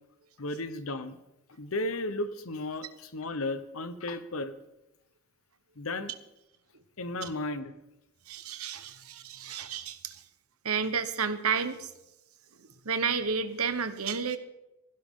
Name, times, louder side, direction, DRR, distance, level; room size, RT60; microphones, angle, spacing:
voice 1, 0.4-1.2 1.6-4.5 5.8-6.1 7.0-7.7, left 2 dB, 70° left, 11 dB, 1.0 m, -34 dB
voice 2, 8.3-10.2 10.6-11.9 12.6-14.4, right 6 dB, 80° right, 10 dB, 1.2 m, -31 dB
20.0 x 16.0 x 3.8 m, 0.93 s
head